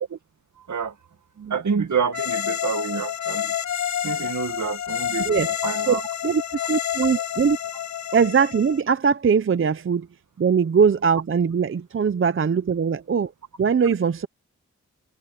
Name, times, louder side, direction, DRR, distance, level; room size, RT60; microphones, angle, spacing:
voice 1, 1.5-3.5 4.0-6.0, right 6 dB, 70° right, 1.9 m, -28 dB
sound 1, 2.1-8.8, left 10 dB, 65° left, 0.7 m, -28 dB
voice 2, 5.2-5.6 5.9-6.0 6.2-6.4 6.7-7.6 8.1-10.1 10.4-13.3 13.6-14.3, right 6 dB, 40° right, 0.6 m, -21 dB
wide cardioid pair, 105°, 31 cm